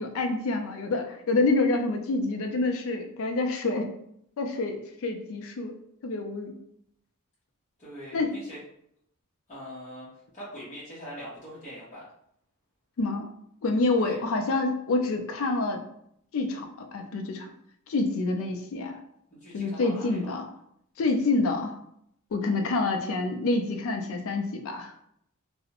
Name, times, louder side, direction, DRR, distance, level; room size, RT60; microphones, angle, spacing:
voice 1, 0.0-3.9 4.4-5.7 6.0-6.5 8.1-8.4 13.0-13.3 13.6-15.8 16.3-17.5 17.9-19.0 19.5-20.5 21.0-21.8 22.3-24.9, left 3 dB, 65° left, 5 dB, 0.4 m, -27 dB
voice 2, 7.8-8.6 9.5-10.1 10.3-12.0 14.0-14.2 19.3-20.3, equal, 30° left, -9 dB, 0.7 m, -42 dB
2.4 x 2.0 x 2.8 m, 0.71 s
head